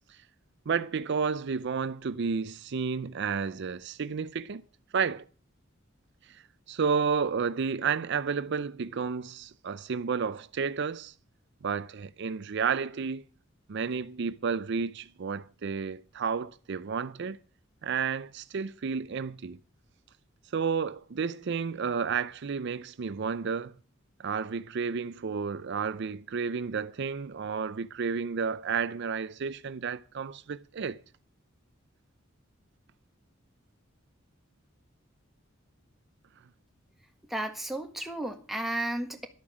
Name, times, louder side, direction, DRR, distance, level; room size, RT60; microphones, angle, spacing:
voice 1, 0.7-4.6 4.9-5.2 6.2-11.1 11.6-13.2 13.7-17.4 17.8-19.6 20.5-23.7 24.2-31.0, right 5 dB, 60° right, 0.5 m, -31 dB
voice 2, 37.3-39.3, right 1 dB, ahead, 1.6 m, -33 dB
12.0 x 8.6 x 6.2 m
head